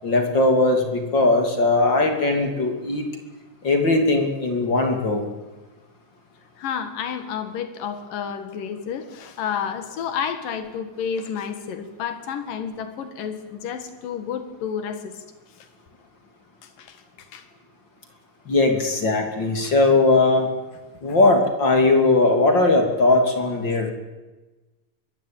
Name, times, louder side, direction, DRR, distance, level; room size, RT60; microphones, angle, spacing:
voice 1, 0.0-3.0 3.6-5.2 18.5-20.5 21.0-23.9, left 2 dB, 35° left, 4 dB, 3.2 m, -19 dB
voice 2, 6.6-15.2 15.6-15.7 16.6-17.4 19.6-19.7, left 7 dB, 85° left, 9 dB, 3.3 m, -31 dB
24.0 x 21.0 x 9.1 m, 1.2 s
omnidirectional pair, 3.8 m